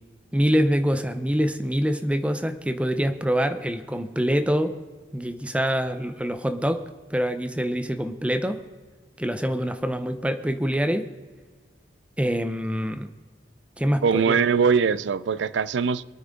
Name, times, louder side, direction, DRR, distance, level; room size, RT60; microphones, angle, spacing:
voice 1, 0.3-4.7 5.1-6.8 7.1-8.6 9.2-11.1 12.2-13.1 13.8-14.4, equal, 5° right, 0.7 m, -25 dB
voice 2, 14.0-16.0, right 6 dB, 80° right, 0.4 m, -21 dB
23.5 x 9.3 x 3.8 m
head